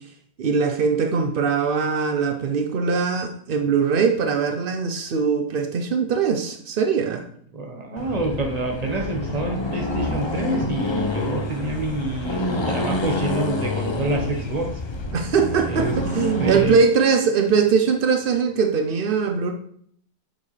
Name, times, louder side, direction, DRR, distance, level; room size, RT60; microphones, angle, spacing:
voice 1, 0.4-7.2 15.1-19.5, right 5 dB, 70° right, 4 dB, 0.5 m, -21 dB
voice 2, 7.5-12.4 12.7-14.7 15.7-15.9 16.4-16.8, right 2 dB, 25° right, 2 dB, 1.1 m, -27 dB
Accelerating revving vroom, 8.0-16.7, left 2 dB, 30° left, 0.5 m, -27 dB
7.7 x 6.8 x 3.2 m, 0.64 s
omnidirectional pair, 1.8 m